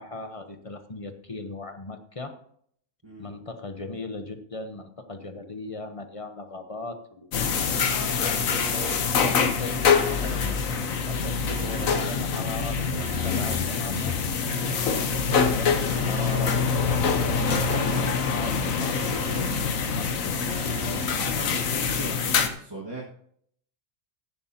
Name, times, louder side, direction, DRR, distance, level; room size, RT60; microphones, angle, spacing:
voice 1, 0.0-2.4 3.2-7.3 8.2-14.2 15.1-19.4 19.9-20.6, left 2 dB, 30° left, 7 dB, 0.8 m, -38 dB
sound 1, 7.3-22.5, left 5 dB, 70° left, 1.4 m, -25 dB
Alarm, 8.5-9.1 10.0-10.6 11.5-12.1 13.0-13.6 14.5-15.1 16.0-16.6 17.5-18.1 19.0-19.6 20.5-21.1, right 6 dB, 55° right, 1.1 m, -42 dB
voice 2, 19.9-20.3 21.1-23.0, right 1 dB, 20° right, -5 dB, 1.6 m, -39 dB
14.5 x 10.5 x 2.8 m, 0.65 s
omnidirectional pair, 1.5 m